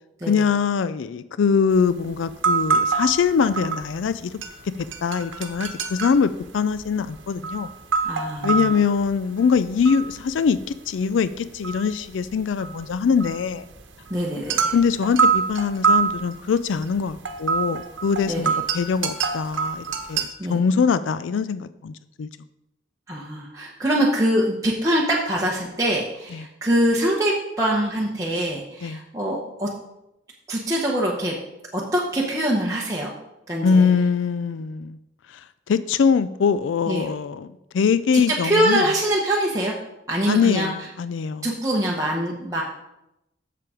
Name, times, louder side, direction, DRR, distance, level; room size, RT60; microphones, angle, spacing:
voice 1, 0.3-4.3 5.0-7.7 8.4-10.6 10.9-13.6 14.7-22.3 26.3-26.5 28.8-29.0 33.6-35.0 35.3-35.4 35.7-37.5 37.7-38.9 40.3-41.5, left 6 dB, 85° left, 14 dB, 0.4 m, -22 dB
sound 1, 1.7-1.8 2.1-4.1 4.4-10.7 11.0-20.3, right 5 dB, 85° right, 1.0 m, -25 dB
voice 2, 8.0-8.7 14.1-14.7 18.3-18.5 20.4-20.6 23.1-29.7 30.5-31.3 31.7-33.1 33.5-33.9 36.9-37.1 38.1-39.7 40.1-40.9 41.4-42.6, right 1 dB, 15° right, -4 dB, 0.9 m, -24 dB
7.5 x 6.9 x 4.9 m, 0.89 s
head